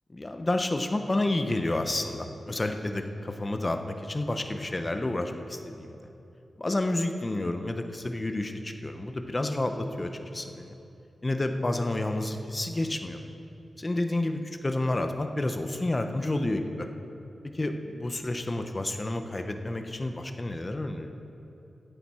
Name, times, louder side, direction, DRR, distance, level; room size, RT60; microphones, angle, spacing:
voice 1, 0.1-5.9 6.6-10.7 11.2-13.2 13.8-16.9 17.5-21.1, left 2 dB, 20° left, 6 dB, 0.6 m, -30 dB
15.0 x 8.2 x 4.3 m, 2.9 s
wide cardioid pair, 155°, 0 cm